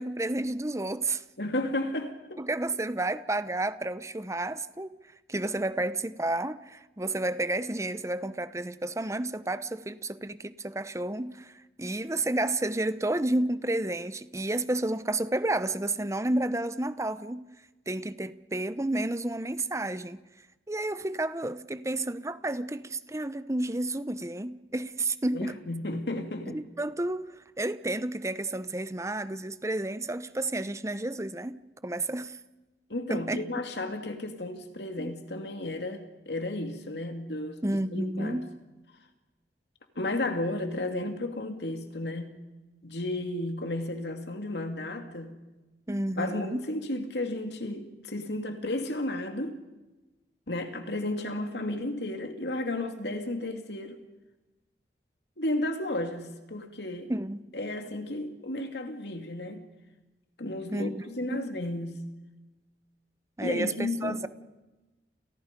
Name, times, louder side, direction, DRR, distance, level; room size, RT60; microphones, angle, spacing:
voice 1, 0.0-1.2 2.4-5.0 5.3-17.4 17.9-20.2 20.7-25.6 26.5-32.4 33.1-33.4 35.0-35.1 37.6-38.5 45.9-46.6 57.1-57.4 60.7-61.0 61.3-61.4 63.4-64.3, right 2 dB, 15° right, 0.8 m, -31 dB
voice 2, 1.4-2.4 25.3-26.6 32.9-38.4 40.0-42.3 42.8-45.3 46.2-49.6 50.5-54.0 55.4-57.1 57.5-59.6 60.4-62.0 63.4-64.2, left 1 dB, 70° left, 2.6 m, -33 dB
29.5 x 29.0 x 5.3 m
head